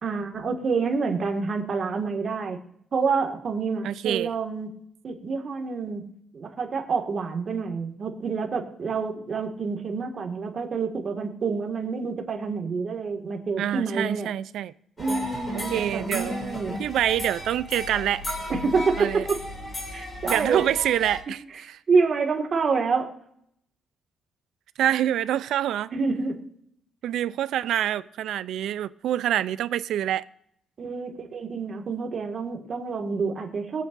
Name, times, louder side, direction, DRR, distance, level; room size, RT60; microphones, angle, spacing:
voice 1, 0.0-2.6 2.9-4.7 5.0-6.0 6.3-14.3 15.0-16.8 18.5-19.4 19.9-20.6 21.9-23.1 25.9-26.5 30.8-33.8, right 4 dB, 35° right, 1.9 m, -27 dB
voice 2, 3.8-4.3 13.6-14.7 15.5-16.4 16.8-18.2 19.0-19.2 20.2-21.8 24.8-25.9 27.0-30.2, right 11 dB, 75° right, 0.5 m, -26 dB
sound 1, 15.0-21.2, left 1 dB, 25° left, 2.8 m, -34 dB
23.0 x 8.5 x 2.6 m
cardioid pair, 160°, 0 cm